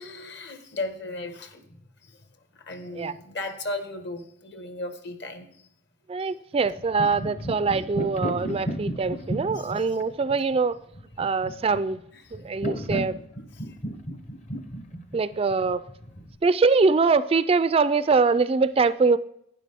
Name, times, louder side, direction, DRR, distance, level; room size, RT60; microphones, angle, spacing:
voice 1, 0.0-1.6 2.7-5.5 9.5-9.7 12.1-12.2, left 2 dB, 55° left, 7 dB, 1.4 m, -35 dB
voice 2, 6.1-10.7 11.2-12.0 12.3-13.2 15.1-15.8 16.4-19.2, right 4 dB, 30° right, 14 dB, 0.3 m, -23 dB
sound 1, 6.6-16.4, equal, 35° left, 0.8 m, -34 dB
11.5 x 9.9 x 3.5 m, 0.73 s
head